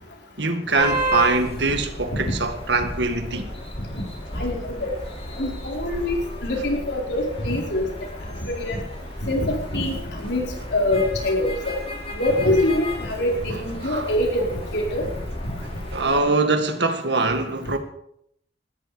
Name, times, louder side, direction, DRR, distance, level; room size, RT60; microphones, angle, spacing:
voice 1, 0.4-3.5 13.8-14.1 15.9-17.8, right 3 dB, 70° right, 2.0 m, -23 dB
sound 1, 0.7-16.2, equal, 35° left, 6.1 m, -33 dB
voice 2, 4.4-4.9 5.4-7.9 8.5-8.8 9.2-11.7 12.1-15.1 15.4-15.5, left 1 dB, 65° left, 4.6 m, -24 dB
19.5 x 13.5 x 5.0 m
head